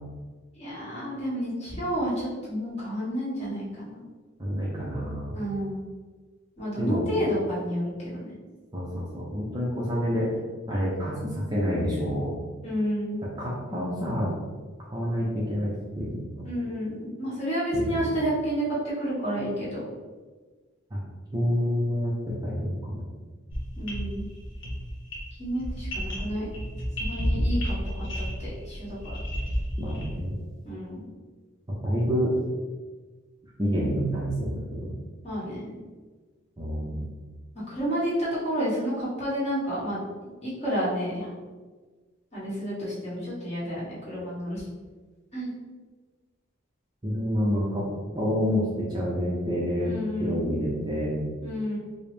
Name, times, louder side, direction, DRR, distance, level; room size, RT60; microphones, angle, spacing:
voice 1, 0.5-4.0 5.3-5.9 6.6-8.3 12.6-13.2 16.4-19.8 23.8-24.3 25.4-26.5 27.0-29.2 30.6-31.0 35.2-35.7 37.7-41.3 42.3-44.6 45.3-45.5 49.8-50.4 51.4-51.8, equal, 30° left, -9 dB, 1.4 m, -30 dB
voice 2, 4.4-5.4 6.8-7.1 8.7-10.3 10.7-12.3 13.4-14.3 14.9-16.4 17.7-18.0 20.9-21.0 21.3-23.0 29.8-30.3 31.8-32.4 33.6-34.9 36.6-37.1 47.0-47.9 48.1-51.2, equal, 20° right, -6 dB, 0.5 m, -28 dB
sound 1, 23.5-30.2, equal, 55° left, 1.0 m, -31 dB
5.0 x 2.0 x 3.2 m, 1.3 s
head